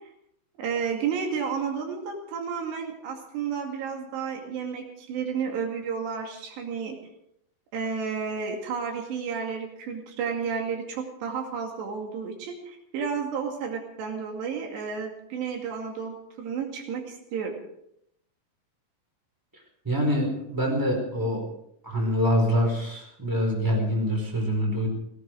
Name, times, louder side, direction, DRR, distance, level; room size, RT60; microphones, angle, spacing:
voice 1, 0.6-7.0 7.7-17.6, right 6 dB, 85° right, 2 dB, 4.5 m, -32 dB
voice 2, 19.8-21.5 21.8-24.9, equal, 5° right, 1 dB, 4.3 m, -25 dB
17.5 x 17.5 x 4.8 m, 0.75 s
omnidirectional pair, 4.8 m